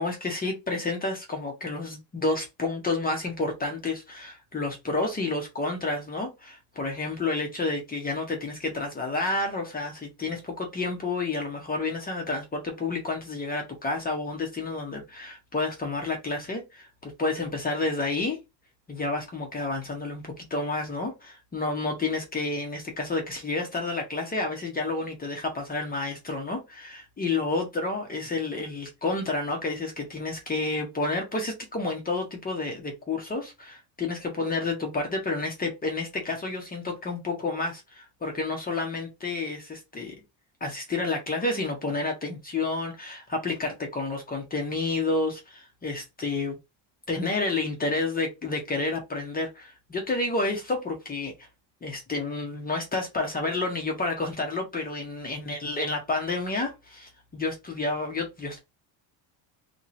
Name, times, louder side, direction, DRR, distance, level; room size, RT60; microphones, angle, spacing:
voice 1, 0.0-18.4 18.9-40.1 40.6-46.6 47.1-51.5 51.8-58.6, left 3 dB, 20° left, 0.8 m, -30 dB
3.0 x 2.9 x 2.6 m
cardioid pair, 135°, 49 cm